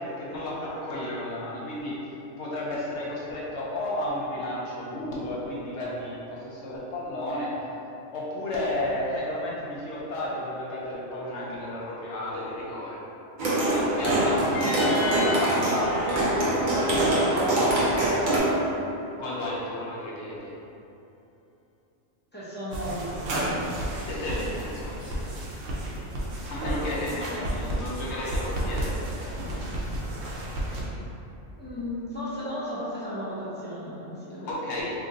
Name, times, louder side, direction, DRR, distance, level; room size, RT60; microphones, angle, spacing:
voice 1, 0.0-2.0 2.4-7.5 8.1-13.0 13.6-18.4 19.2-20.5 24.0-25.2 26.5-28.9 34.4-34.9, left 1 dB, 65° left, -6 dB, 0.9 m, -32 dB
sound 1, 13.4-18.4, right 1 dB, 50° right, 0.7 m, -24 dB
sound 2, 14.5-17.7, left 2 dB, 85° left, 1.1 m, -36 dB
voice 2, 22.3-23.8 27.3-27.5 31.5-34.5, equal, 10° left, -10 dB, 0.5 m, -35 dB
sound 3, 22.7-30.8, right 1 dB, 75° right, 1.0 m, -32 dB
2.8 x 2.6 x 3.8 m, 2.8 s
omnidirectional pair, 1.3 m